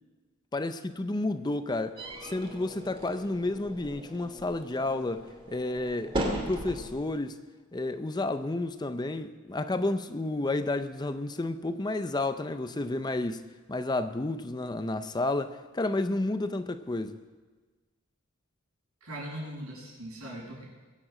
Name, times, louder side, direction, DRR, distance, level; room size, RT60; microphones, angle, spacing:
voice 1, 0.5-6.2 6.5-7.4 7.7-17.2, left 2 dB, 20° left, 0.5 m, -31 dB
sound 1, 2.0-7.1, right 1 dB, 25° right, 2.4 m, -37 dB
voice 2, 19.0-20.6, right 1 dB, 85° right, 6.8 m, -40 dB
22.0 x 7.5 x 7.5 m
head